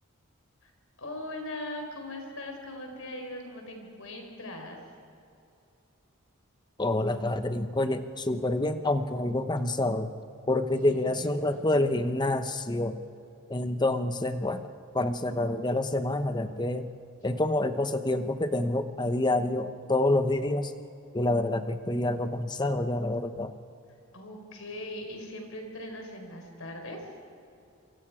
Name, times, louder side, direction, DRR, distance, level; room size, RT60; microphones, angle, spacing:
voice 1, 1.0-4.8 10.7-11.6 24.1-27.1, left 1 dB, 70° left, 3 dB, 4.6 m, -40 dB
voice 2, 6.8-10.1 10.5-13.0 13.5-14.7 14.9-16.9 17.2-20.7 21.1-23.5, left 2 dB, 20° left, 9 dB, 0.9 m, -27 dB
27.0 x 24.0 x 4.9 m, 2.6 s
head